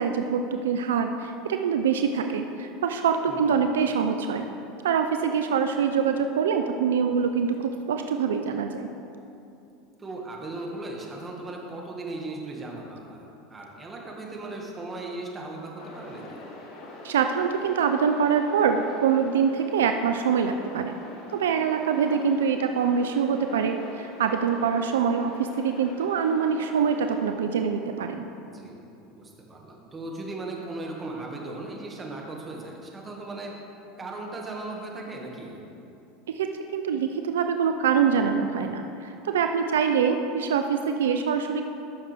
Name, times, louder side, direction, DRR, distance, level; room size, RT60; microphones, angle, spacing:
voice 1, 0.0-4.5 4.8-8.9 17.0-21.0 21.3-28.2 36.3-41.6, right 6 dB, 80° right, 6 dB, 0.4 m, -24 dB
voice 2, 3.3-3.7 10.0-16.4 28.5-33.5 34.0-35.6, right 2 dB, 25° right, -1 dB, 1.9 m, -37 dB
sound 1, 15.8-27.3, left 2 dB, 55° left, 1.4 m, -44 dB
13.5 x 6.5 x 3.5 m, 2.7 s
hypercardioid pair, 85°, 0 cm